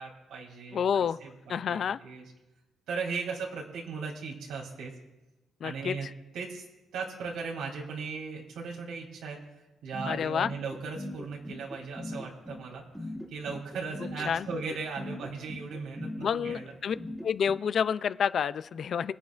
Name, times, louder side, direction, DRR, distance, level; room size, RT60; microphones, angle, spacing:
voice 1, 0.0-2.2 2.9-4.9 5.6-6.1 6.3-6.6 6.9-9.4 9.8-16.7, right 4 dB, 90° right, -1 dB, 3.1 m, -37 dB
voice 2, 0.7-1.2 1.5-2.0 5.6-6.0 10.1-10.5 14.3-14.5 16.2-17.0 17.2-19.1, left 7 dB, 55° left, 15 dB, 0.4 m, -28 dB
sound 1, 9.9-17.6, left 1 dB, ahead, 1.5 m, -40 dB
24.5 x 9.3 x 2.5 m, 1.0 s
cardioid pair, 120°, 0 cm